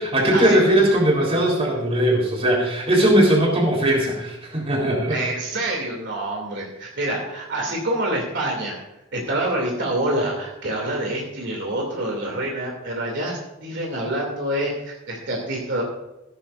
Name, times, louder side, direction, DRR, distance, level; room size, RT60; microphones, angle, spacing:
voice 1, 0.1-5.2, right 1 dB, 30° right, -1 dB, 3.9 m, -19 dB
voice 2, 5.1-8.8 9.1-15.8, right 1 dB, 60° right, -1 dB, 2.7 m, -26 dB
15.5 x 13.0 x 2.6 m, 0.92 s
head